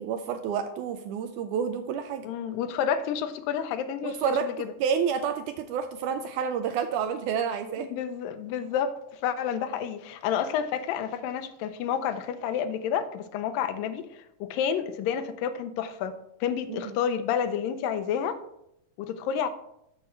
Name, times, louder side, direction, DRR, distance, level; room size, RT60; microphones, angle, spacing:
voice 1, 0.0-2.3 4.0-4.5 4.8-7.9 16.7-16.9, right 7 dB, 80° right, 8 dB, 1.8 m, -29 dB
voice 2, 2.2-4.7 7.8-18.4 19.0-19.5, left 8 dB, 85° left, 10 dB, 2.3 m, -30 dB
7.9 x 6.5 x 4.3 m, 0.80 s
omnidirectional pair, 3.9 m